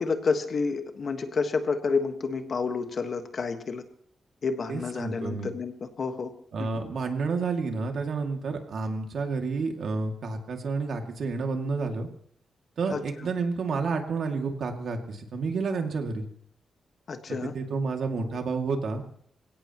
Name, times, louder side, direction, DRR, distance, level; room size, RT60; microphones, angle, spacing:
voice 1, 0.0-3.8 4.4-6.3 6.6-6.9 12.9-13.0 17.1-17.5, left 4 dB, 45° left, 7 dB, 1.5 m, -29 dB
voice 2, 4.7-5.5 6.5-12.1 12.8-16.3 17.4-19.0, right 4 dB, 60° right, 3 dB, 2.4 m, -30 dB
26.0 x 17.0 x 3.1 m, 0.63 s
wide cardioid pair, 170°, 0 cm